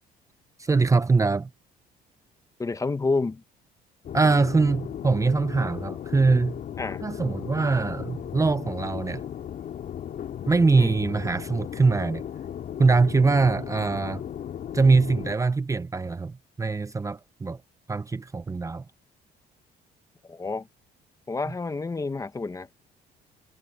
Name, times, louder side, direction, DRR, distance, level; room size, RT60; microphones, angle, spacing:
voice 1, 0.6-1.5 4.1-6.6 7.0-9.2 10.5-12.2 12.8-14.2 14.7-17.6 17.9-18.8, right 4 dB, 20° right, 0.8 m, -23 dB
voice 2, 2.6-3.4 6.8-7.0 10.8-10.9 20.3-20.7 21.3-22.7, left 3 dB, 20° left, 1.0 m, -29 dB
sound 1, 4.0-15.3, left 9 dB, 55° left, 3.2 m, -36 dB
cardioid pair, 110°, 17 cm